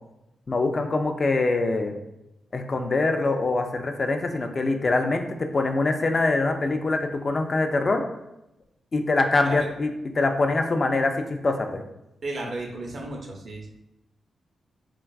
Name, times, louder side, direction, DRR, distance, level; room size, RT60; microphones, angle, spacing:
voice 1, 0.5-1.9 2.5-8.0 8.9-11.8, left 3 dB, 50° left, 5 dB, 0.3 m, -24 dB
voice 2, 12.2-13.7, right 2 dB, 60° right, 1 dB, 0.5 m, -34 dB
2.5 x 2.2 x 2.3 m, 0.88 s
supercardioid pair, 45°, 0 cm